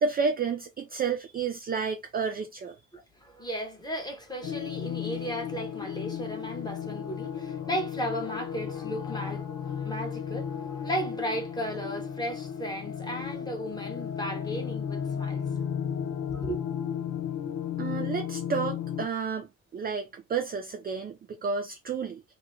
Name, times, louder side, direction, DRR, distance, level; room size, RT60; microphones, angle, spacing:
voice 1, 0.0-2.8 17.8-22.2, right 5 dB, 25° right, 0.4 m, -31 dB
voice 2, 2.9-15.5 16.3-16.6, equal, 10° left, 1.4 m, -35 dB
sound 1, 4.4-19.1, left 8 dB, 50° left, 0.7 m, -34 dB
3.0 x 2.3 x 3.2 m
figure-of-eight pair, 50°, 38 cm